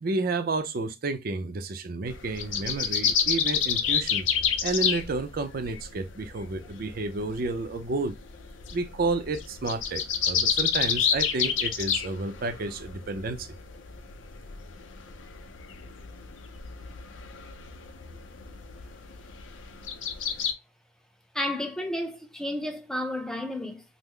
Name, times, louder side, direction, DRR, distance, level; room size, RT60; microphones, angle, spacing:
voice 1, 0.0-4.3 4.6-8.2 8.7-13.5, right 3 dB, 50° right, 0.5 m, -31 dB
sound 1, 2.1-20.5, left 7 dB, 90° left, 0.5 m, -30 dB
voice 2, 21.3-23.8, left 1 dB, 5° left, 0.5 m, -31 dB
3.6 x 2.0 x 3.1 m
head